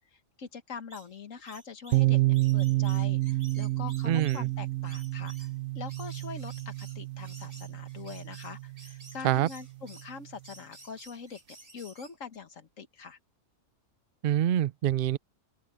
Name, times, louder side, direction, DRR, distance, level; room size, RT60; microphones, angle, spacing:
voice 1, 0.1-5.5 5.8-11.4 11.7-13.2, left 5 dB, 70° left, 1.9 m, -43 dB
sound 1, 0.9-4.5 4.8-5.6 5.9-10.1 10.4-12.4, right 2 dB, 40° right, 3.8 m, -53 dB
sound 2, 1.9-9.6, right 18 dB, 90° right, 1.1 m, -29 dB
voice 2, 4.0-4.5 9.2-9.5 14.2-15.2, right 11 dB, 60° right, 0.6 m, -25 dB
open air
omnidirectional pair, 1.4 m